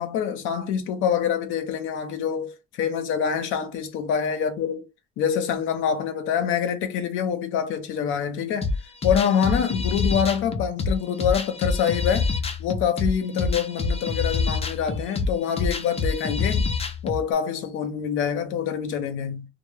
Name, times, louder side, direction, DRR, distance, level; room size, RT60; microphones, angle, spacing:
voice 1, 0.0-4.8 5.2-8.7 9.0-12.3 12.6-16.7 17.0-19.5, left 8 dB, 90° left, 0.5 m, -25 dB
sound 1, 8.6-17.2, left 4 dB, 30° left, 0.5 m, -26 dB
2.0 x 2.0 x 3.1 m
cardioid pair, 90°, 20 cm